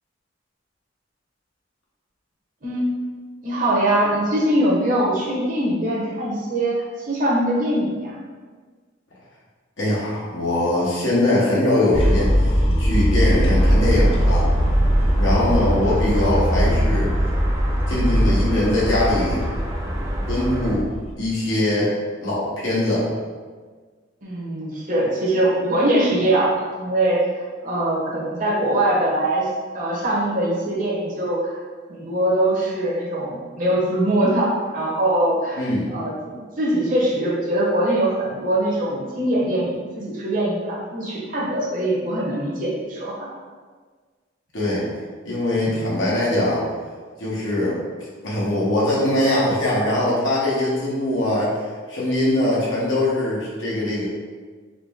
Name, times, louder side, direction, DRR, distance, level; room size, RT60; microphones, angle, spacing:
voice 1, 2.6-3.0 3.4-6.8 7.1-8.2 15.3-15.6 24.2-27.2 27.6-29.5 29.7-31.6 31.9-43.3 45.7-45.8, right 1 dB, 45° right, -5 dB, 0.9 m, -22 dB
voice 2, 9.8-14.5 15.2-17.1 17.9-19.4 20.2-20.8 21.2-21.9 22.2-23.0 35.6-35.9 44.5-44.8 45.2-46.6 47.2-47.8 48.2-51.6 51.9-54.1, left 1 dB, 75° left, -7 dB, 1.2 m, -22 dB
sound 1, 11.9-21.1, equal, 30° left, 0.5 m, -20 dB
sound 2, 13.5-20.8, right 1 dB, 20° right, 0.4 m, -33 dB
3.9 x 2.1 x 3.6 m, 1.5 s
head